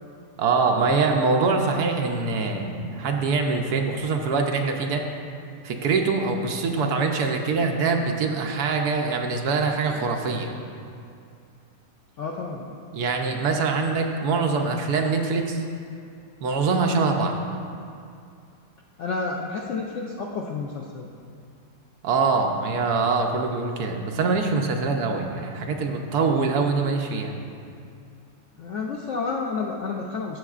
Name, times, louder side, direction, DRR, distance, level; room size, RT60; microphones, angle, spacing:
voice 1, 0.4-5.0 5.6-10.6 12.9-15.6 16.4-17.4 22.0-27.3, right 4 dB, 70° right, 3 dB, 1.2 m, -24 dB
voice 2, 12.2-12.8 19.0-21.1 28.6-30.4, left 4 dB, 70° left, -1 dB, 0.7 m, -30 dB
12.5 x 7.6 x 2.4 m, 2.4 s
omnidirectional pair, 1.9 m